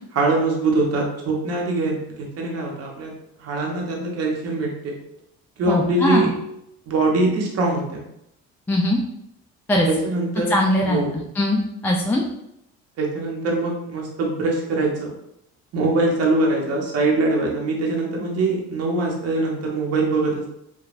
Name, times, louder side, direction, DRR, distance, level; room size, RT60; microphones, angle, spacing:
voice 1, 0.1-3.1 3.4-4.9 5.6-6.3 6.9-8.0 9.9-10.5 10.8-11.1 13.0-15.1 15.7-20.5, right 2 dB, 50° right, 0 dB, 0.9 m, -23 dB
voice 2, 5.7-6.3 8.7-9.0 9.7-9.9 10.5-11.0 11.4-12.2, left 1 dB, 5° left, -1 dB, 0.3 m, -20 dB
2.9 x 2.2 x 2.5 m, 0.79 s
supercardioid pair, 80°, 31 cm